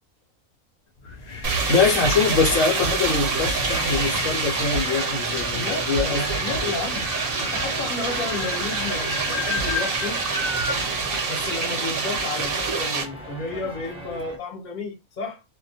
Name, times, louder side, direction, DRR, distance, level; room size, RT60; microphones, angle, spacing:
sound 1, 1.0-10.8, left 3 dB, 90° left, 0.3 m, -33 dB
sound 2, 1.4-13.0, right 4 dB, 55° right, 0.7 m, -26 dB
voice 1, 1.7-6.2 6.6-6.7, left 5 dB, 75° left, 0.9 m, -23 dB
sound 3, 1.9-14.4, right 1 dB, 5° right, 0.6 m, -40 dB
voice 2, 5.5-7.0 7.4-10.2 11.3-15.4, left 3 dB, 40° left, 0.8 m, -32 dB
2.3 x 2.1 x 2.6 m
omnidirectional pair, 1.4 m